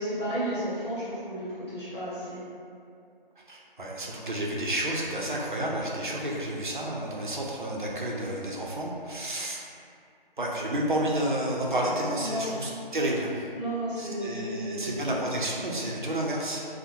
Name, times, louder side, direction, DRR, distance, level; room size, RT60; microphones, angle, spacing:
voice 1, 0.0-2.4 12.1-12.5 13.5-15.0, right 1 dB, 30° left, -19 dB, 1.5 m, -33 dB
voice 2, 3.4-9.6 10.4-13.5 14.0-16.7, right 1 dB, 55° right, -3 dB, 0.5 m, -30 dB
2.7 x 2.0 x 2.9 m, 2.4 s
figure-of-eight pair, 180°, 29 cm